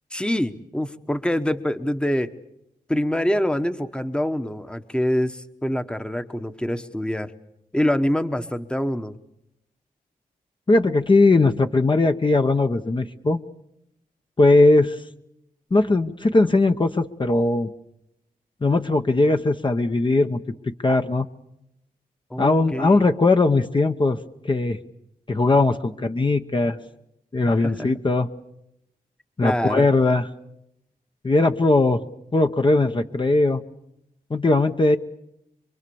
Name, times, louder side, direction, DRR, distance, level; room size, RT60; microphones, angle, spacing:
voice 1, 0.1-2.3 2.9-7.3 7.7-9.2 22.3-23.0 27.5-27.9 29.4-29.9, equal, 5° left, 10 dB, 1.1 m, -25 dB
voice 2, 10.7-13.4 14.4-15.0 15.7-17.7 18.6-20.4 20.7-21.3 22.4-24.2 24.4-24.8 25.3-26.8 27.3-28.3 29.4-30.2 31.2-32.0 32.3-33.6 34.3-35.0, left 2 dB, 30° left, 6 dB, 1.0 m, -19 dB
26.0 x 23.5 x 7.0 m, 0.81 s
wide cardioid pair, 105°, 15 cm